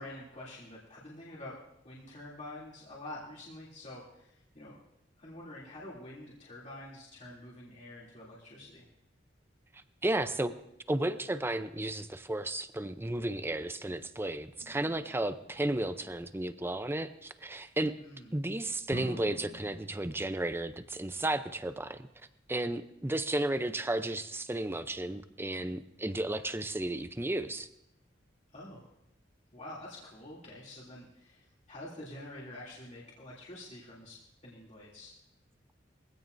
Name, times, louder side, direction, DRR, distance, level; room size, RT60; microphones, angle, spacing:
voice 1, 0.0-1.6 1.8-4.8 5.2-8.9 18.0-18.3 28.5-28.9 29.5-34.2 34.4-35.1, left 1 dB, 40° left, -7 dB, 3.0 m, -47 dB
voice 2, 10.0-10.5 10.9-17.9 18.3-22.1 22.5-27.7, right 1 dB, 15° right, 11 dB, 0.6 m, -33 dB
sound 1, 14.6-16.4 18.9-19.9, equal, 65° right, 7.3 m, -47 dB
22.5 x 16.0 x 2.7 m, 0.80 s
head